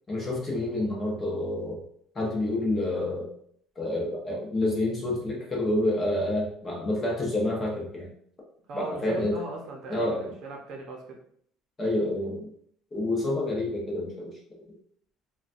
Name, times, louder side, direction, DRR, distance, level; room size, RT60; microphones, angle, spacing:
voice 1, 0.1-1.8 2.1-3.3 3.8-8.1 8.7-9.4 9.9-10.3 11.8-12.5 12.9-14.3, left 1 dB, 20° left, -3 dB, 0.8 m, -28 dB
voice 2, 8.7-11.2, right 3 dB, 50° right, 0 dB, 0.7 m, -39 dB
3.9 x 2.3 x 2.5 m, 0.64 s
cardioid pair, 165°, 0 cm